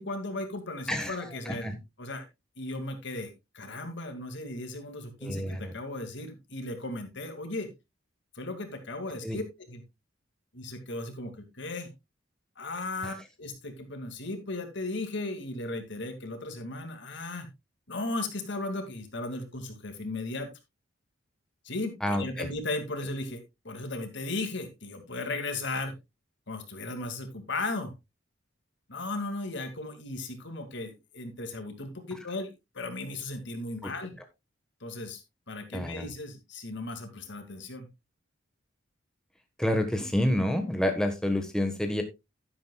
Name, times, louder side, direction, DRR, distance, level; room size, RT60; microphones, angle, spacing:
voice 1, 0.0-1.7 2.0-2.2 2.6-7.7 8.3-9.4 9.7-9.8 10.5-11.9 12.6-17.5 17.9-20.5 21.6-25.9 26.5-27.9 28.9-34.1 34.8-35.2 35.5-37.9, left 2 dB, 65° left, 7 dB, 2.3 m, -36 dB
voice 2, 0.9-1.8 5.2-5.7 9.2-9.4 13.0-13.1 22.0-22.5 33.8-33.9 35.7-36.1 39.6-42.0, left 1 dB, 5° left, 5 dB, 1.4 m, -29 dB
11.5 x 10.5 x 2.3 m, 0.23 s
head